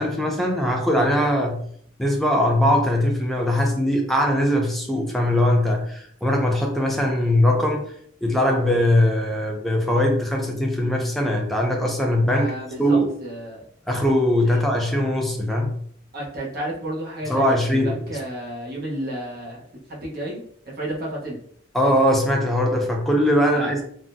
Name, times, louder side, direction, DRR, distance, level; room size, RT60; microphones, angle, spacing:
voice 1, 0.0-1.6 2.0-7.9 8.2-12.5 12.8-13.1 13.9-15.7 17.3-18.0 21.7-23.8, left 1 dB, ahead, 0.5 m, -21 dB
voice 2, 12.2-13.7 14.4-14.6 16.1-19.6 19.9-20.4 20.7-21.4 23.4-23.8, right 1 dB, 50° right, 1.0 m, -32 dB
3.6 x 2.2 x 2.6 m
head